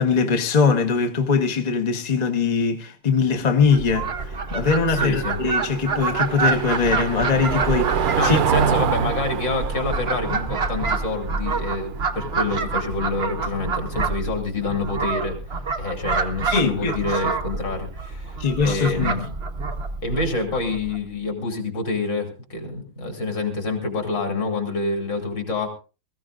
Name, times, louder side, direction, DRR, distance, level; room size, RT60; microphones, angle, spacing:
voice 1, 0.0-8.4 16.5-17.0 18.4-19.2, left 5 dB, 30° left, 0.8 m, -21 dB
Car passing by / Engine, 3.3-13.9, right 8 dB, 80° right, 1.8 m, -28 dB
Fowl, 3.7-21.0, right 4 dB, 45° right, 0.8 m, -27 dB
voice 2, 4.9-5.4 8.2-19.3 20.0-25.7, left 3 dB, 55° left, 3.4 m, -27 dB
21.0 x 14.5 x 2.5 m
omnidirectional pair, 2.4 m